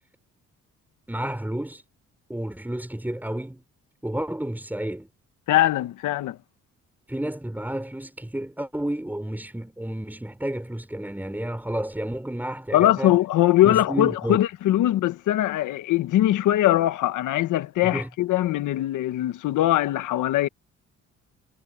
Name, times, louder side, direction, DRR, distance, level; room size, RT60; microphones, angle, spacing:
voice 1, 1.1-1.8 2.3-3.6 4.0-5.1 7.1-13.2 13.6-14.4 17.8-18.1, right 1 dB, 5° right, 5.5 m, -31 dB
voice 2, 5.5-6.4 12.7-20.5, left 14 dB, 85° left, 1.4 m, -21 dB
cardioid pair, 90°, 30 cm